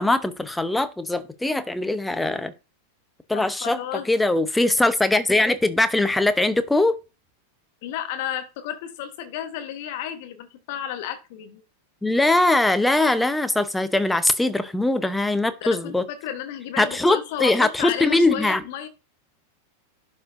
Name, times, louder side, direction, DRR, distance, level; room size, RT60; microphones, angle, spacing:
voice 1, 0.0-2.5 3.3-3.8 4.1-7.0 12.0-16.0 16.8-18.6, left 2 dB, 5° left, 0.7 m, -21 dB
voice 2, 3.3-4.1 7.8-11.6 15.6-18.9, left 10 dB, 50° left, 1.1 m, -32 dB
11.5 x 4.3 x 2.6 m
figure-of-eight pair, 90°, 0 cm